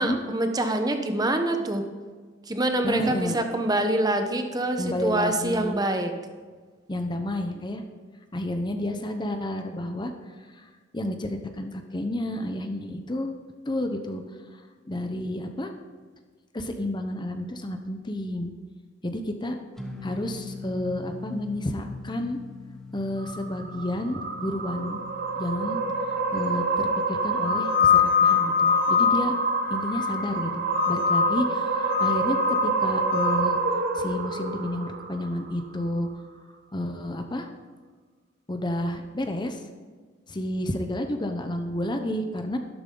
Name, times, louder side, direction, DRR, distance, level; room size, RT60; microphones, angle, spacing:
voice 1, 0.0-1.8 2.5-6.1, right 1 dB, 20° right, 6 dB, 0.9 m, -25 dB
voice 2, 2.8-3.4 4.8-5.8 6.9-7.8 8.3-10.1 10.5-10.6 10.9-13.3 13.7-14.2 14.5-14.6 14.9-15.7 16.5-18.5 19.0-19.6 20.0-22.4 22.9-25.0 25.3-25.8 26.1-29.3 29.7-33.6 33.9-36.1 36.7-37.5 38.5-39.6 40.3-42.6, left 1 dB, 25° left, 6 dB, 0.8 m, -30 dB
acoustic guitar lofi, 19.8-26.6, left 3 dB, ahead, 1.2 m, -42 dB
sound 1, 23.2-35.7, right 4 dB, 50° right, 1.0 m, -28 dB
sound 2, 27.4-30.3 30.7-31.5 31.8-33.4, left 8 dB, 75° left, 1.3 m, -24 dB
12.0 x 12.0 x 3.9 m, 1.5 s
head